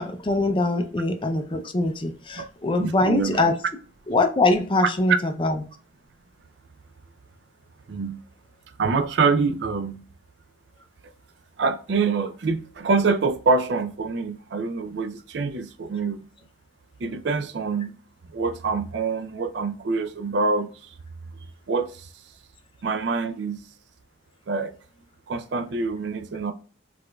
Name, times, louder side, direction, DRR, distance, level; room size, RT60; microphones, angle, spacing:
voice 1, 0.0-3.5 4.1-5.6, left 2 dB, 25° left, 0.4 m, -23 dB
voice 2, 2.8-3.4 7.9-8.2 8.8-10.0 11.6-16.2 17.0-17.9 18.3-20.7 21.7-22.1 22.8-23.6 24.5-24.7 25.3-26.5, right 4 dB, 65° right, 0.4 m, -25 dB
4.7 x 2.4 x 2.2 m
head